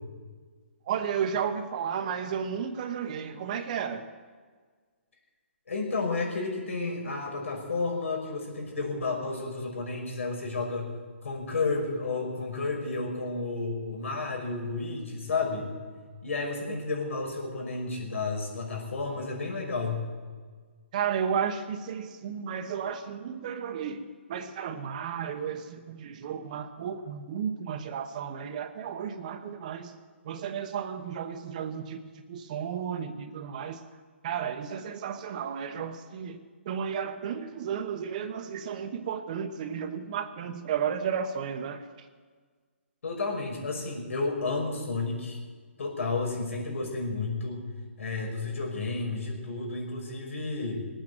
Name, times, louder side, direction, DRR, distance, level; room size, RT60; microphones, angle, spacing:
voice 1, 0.9-4.1 16.7-16.8 20.9-24.0 24.3-29.9 30.2-32.0 32.3-33.8 34.2-41.8, right 7 dB, 35° right, 1.1 m, -33 dB
voice 2, 5.7-10.9 11.2-15.7 16.2-20.0 43.0-45.4 45.8-47.7 48.0-50.9, left 3 dB, 80° left, 5.6 m, -31 dB
19.5 x 9.0 x 7.9 m
hypercardioid pair, 160°, 7 cm